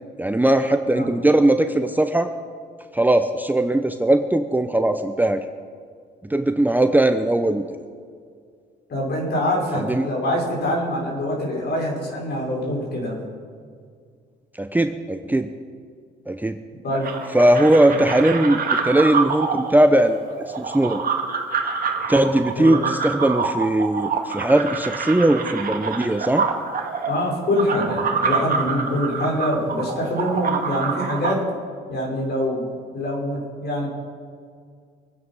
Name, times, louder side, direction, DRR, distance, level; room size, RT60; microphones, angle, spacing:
voice 1, 0.2-2.3 2.9-5.4 6.3-7.6 9.8-10.1 14.6-15.5 16.3-16.6 17.3-21.0 22.1-26.4, right 1 dB, 10° right, 7 dB, 0.7 m, -19 dB
voice 2, 8.9-13.2 16.8-17.1 17.9-18.1 22.6-22.8 27.1-31.4 31.9-32.7 32.9-33.9, left 1 dB, 55° left, -1 dB, 5.4 m, -24 dB
sound 1, 17.0-31.4, right 5 dB, 45° right, 1.9 m, -26 dB
24.0 x 9.4 x 5.5 m, 2.1 s
cardioid pair, 90°, 20 cm